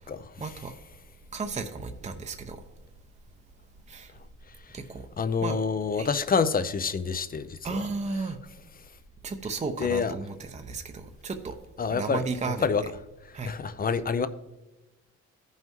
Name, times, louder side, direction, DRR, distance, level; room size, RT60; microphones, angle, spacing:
voice 1, 0.4-0.7 1.3-2.6 3.9-4.1 4.7-5.0 5.4-5.6 5.9-6.1 7.6-8.4 9.2-11.5 11.9-12.7 13.3-13.5, right 4 dB, 25° right, 0.7 m, -34 dB
voice 2, 5.2-7.8 9.8-10.1 11.8-12.2 12.6-12.8 13.5-14.3, left 5 dB, 30° left, 0.6 m, -27 dB
15.0 x 5.6 x 3.1 m
cardioid pair, 90°, 30 cm